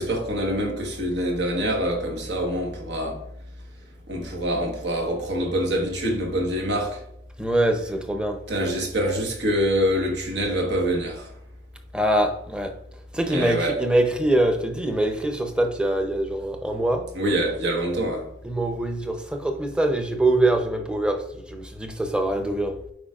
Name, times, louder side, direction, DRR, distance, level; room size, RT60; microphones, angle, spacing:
voice 1, 0.0-3.2 4.1-7.0 8.5-11.3 13.3-13.8 17.1-18.3, equal, 80° right, 1.4 m, -25 dB
voice 2, 7.4-8.4 11.9-12.7 13.1-17.1 18.4-22.8, right 1 dB, 5° right, 0.7 m, -24 dB
8.8 x 4.9 x 2.5 m
head